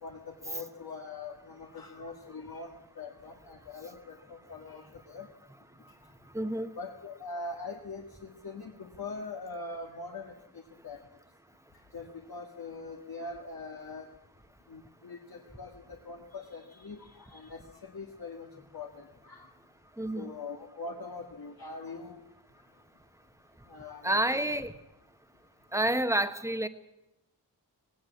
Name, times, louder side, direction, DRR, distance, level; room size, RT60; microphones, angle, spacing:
voice 1, 0.0-5.3 6.4-6.5 6.8-11.0 11.9-14.1 14.7-19.5 20.2-22.2 23.7-24.1 24.3-24.6, left 3 dB, 65° left, 1 dB, 1.8 m, -43 dB
voice 2, 6.3-6.7 20.0-20.3 24.0-24.7 25.7-26.7, right 1 dB, 10° right, 10 dB, 1.1 m, -29 dB
18.0 x 18.0 x 8.5 m, 0.93 s
wide cardioid pair, 95°, 39 cm